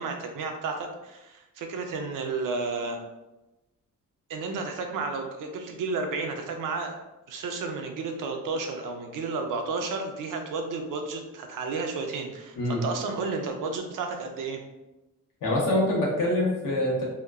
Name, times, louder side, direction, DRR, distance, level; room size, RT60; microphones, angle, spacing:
voice 1, 0.0-3.0 4.3-7.0 7.3-14.6, right 4 dB, 75° right, 4 dB, 0.5 m, -32 dB
voice 2, 15.4-17.0, left 1 dB, 75° left, -3 dB, 0.9 m, -25 dB
2.9 x 2.2 x 2.3 m, 1.0 s
cardioid pair, 130°, 32 cm